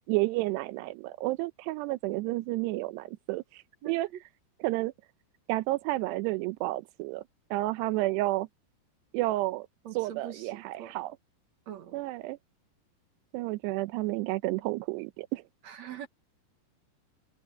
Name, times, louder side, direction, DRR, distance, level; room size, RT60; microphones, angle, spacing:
voice 1, 0.1-4.1 4.6-4.9 5.5-7.2 7.5-8.5 9.1-9.7 9.9-11.2 11.9-12.4 13.3-15.4, right 19 dB, 90° right, 2.9 m, -31 dB
voice 2, 3.8-4.2 9.8-11.0 11.7-12.0 15.6-16.1, right 10 dB, 70° right, 1.7 m, -43 dB
omnidirectional pair, 4.8 m